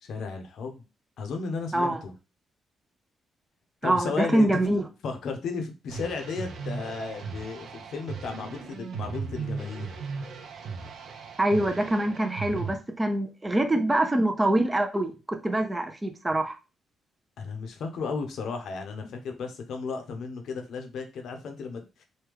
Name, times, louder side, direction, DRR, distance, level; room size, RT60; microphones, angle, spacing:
voice 1, 0.0-0.8 1.2-2.1 3.8-4.5 5.0-9.9 17.4-22.0, left 4 dB, 70° left, 5 dB, 0.7 m, -34 dB
voice 2, 3.8-4.8 11.4-16.6, right 1 dB, 15° right, 5 dB, 0.4 m, -25 dB
sound 1, 5.9-12.8, right 5 dB, 75° right, 0.6 m, -37 dB
3.1 x 2.2 x 3.4 m, 0.30 s
cardioid pair, 120°, 0 cm